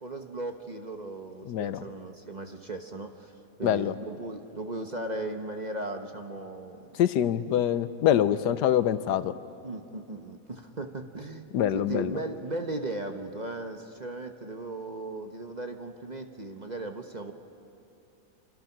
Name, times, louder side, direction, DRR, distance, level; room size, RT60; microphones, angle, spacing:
voice 1, 0.0-3.3 3.6-7.0 9.6-17.3, right 2 dB, 30° right, 5 dB, 1.1 m, -37 dB
voice 2, 1.5-1.8 3.6-3.9 7.0-9.3 11.5-12.2, left 10 dB, 90° left, 13 dB, 1.4 m, -25 dB
27.5 x 26.0 x 6.0 m, 2.7 s
omnidirectional pair, 1.7 m